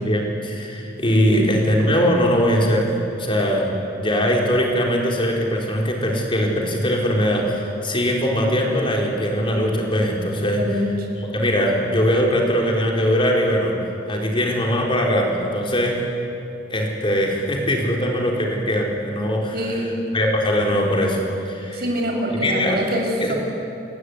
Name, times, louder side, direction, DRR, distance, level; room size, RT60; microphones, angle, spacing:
voice 1, 0.0-2.9 3.2-10.6 11.3-13.8 14.1-16.0 16.7-19.9 20.1-21.2 21.4-21.8 22.3-22.8 23.2-23.3, equal, 30° left, -1 dB, 4.4 m, -21 dB
voice 2, 10.6-10.9 19.5-20.0 21.7-23.3, equal, 55° right, 1 dB, 5.8 m, -25 dB
30.0 x 15.5 x 9.7 m, 2.7 s
head